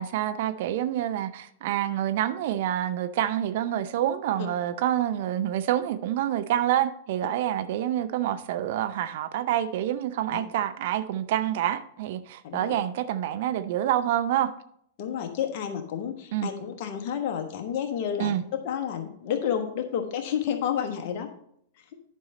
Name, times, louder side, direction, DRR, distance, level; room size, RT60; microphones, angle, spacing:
voice 1, 0.0-14.5 16.3-16.5 18.2-18.4, right 11 dB, 55° right, 0.5 m, -27 dB
voice 2, 12.4-12.8 15.0-21.3, left 8 dB, 45° left, 1.3 m, -30 dB
10.5 x 5.5 x 4.1 m
figure-of-eight pair, 100°, 0 cm